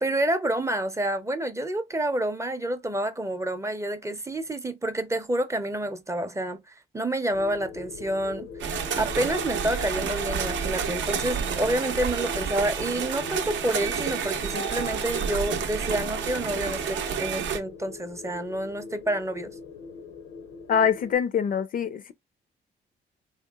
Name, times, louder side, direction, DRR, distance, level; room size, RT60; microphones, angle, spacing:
voice 1, 0.0-8.5 9.0-19.5, right 1 dB, 15° right, 0.5 m, -28 dB
sound 1, 7.3-21.2, left 5 dB, 90° left, 0.6 m, -41 dB
sound 2, 8.6-17.6, right 7 dB, 70° right, 0.6 m, -30 dB
voice 2, 20.7-22.1, left 7 dB, 45° left, 0.4 m, -24 dB
3.2 x 2.8 x 2.2 m
cardioid pair, 90°, 20 cm